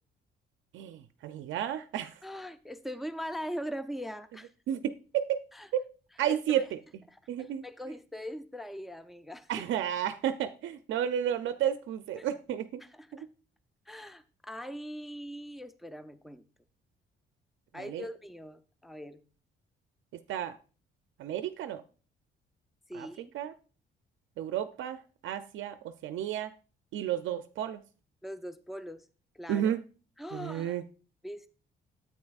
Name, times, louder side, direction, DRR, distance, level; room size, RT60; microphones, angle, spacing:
voice 1, 0.7-2.1 4.7-5.4 6.2-6.6 7.3-7.6 9.5-12.8 17.8-18.0 20.3-20.5 21.2-21.8 22.9-23.1 23.3-23.5 24.4-25.8 26.0-26.5 26.9-27.8 29.5-29.8 30.3-30.8, right 10 dB, 75° right, 0.5 m, -32 dB
voice 2, 2.2-4.5 5.5-5.7 6.3-6.7 7.1-9.7 12.2-12.3 12.8-13.2 13.9-16.4 17.7-19.2 22.9-23.3 28.2-29.0 29.3-29.8 30.2-30.8 31.2-31.5, equal, ahead, 0.5 m, -41 dB
9.5 x 8.5 x 2.4 m
cardioid pair, 90°, 20 cm